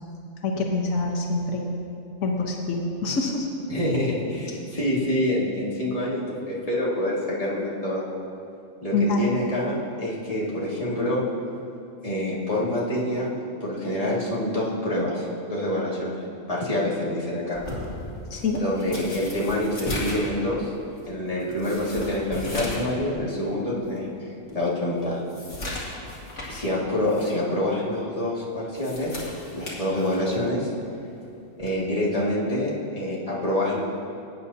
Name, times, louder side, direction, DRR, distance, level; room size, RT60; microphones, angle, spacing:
voice 1, 0.4-1.7 2.2-3.5 8.9-9.3 18.3-18.6, left 3 dB, 85° left, 0 dB, 1.4 m, -25 dB
voice 2, 3.7-8.0 8.8-11.2 12.0-13.3 13.6-16.2 16.5-17.6 18.6-20.7 21.1-25.2 26.5-29.2 29.5-30.7 31.6-33.8, left 1 dB, 25° left, -6 dB, 2.1 m, -26 dB
sound 1, 17.5-22.9 23.3-23.4 24.0-24.1 24.5-26.7 27.1-27.3 28.5-30.5 31.6-31.8, left 1 dB, 65° left, 2.5 m, -36 dB
18.5 x 9.2 x 2.8 m, 2.6 s
omnidirectional pair, 1.4 m